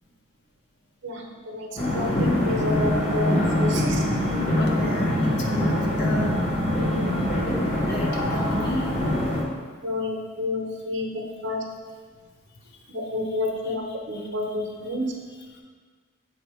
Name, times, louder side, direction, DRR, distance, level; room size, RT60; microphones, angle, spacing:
voice 1, 1.0-4.1 6.8-7.3 9.8-11.6 12.9-15.1, left 1 dB, 60° right, 1 dB, 0.8 m, -30 dB
sound 1, 1.8-9.4, left 1 dB, 30° left, 1.2 m, -24 dB
voice 2, 4.6-6.3 7.5-7.6 7.9-8.9, left 1 dB, 55° left, 0 dB, 0.8 m, -33 dB
7.4 x 2.8 x 4.7 m, 1.5 s
head